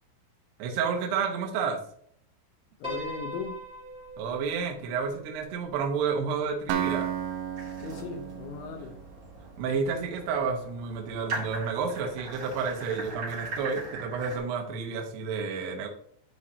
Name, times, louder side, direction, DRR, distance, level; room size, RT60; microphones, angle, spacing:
voice 1, 0.6-1.8 4.2-7.1 9.6-15.9, right 5 dB, 70° right, 2.7 m, -30 dB
voice 2, 2.8-3.7 7.8-9.0, left 5 dB, 80° left, 2.8 m, -38 dB
Piano, 2.8-7.2, equal, ahead, 1.2 m, -42 dB
Acoustic guitar, 6.7-10.5, right 9 dB, 90° right, 2.5 m, -34 dB
sound 1, 7.6-14.4, right 2 dB, 45° right, 1.7 m, -40 dB
13.0 x 4.8 x 2.8 m
omnidirectional pair, 6.0 m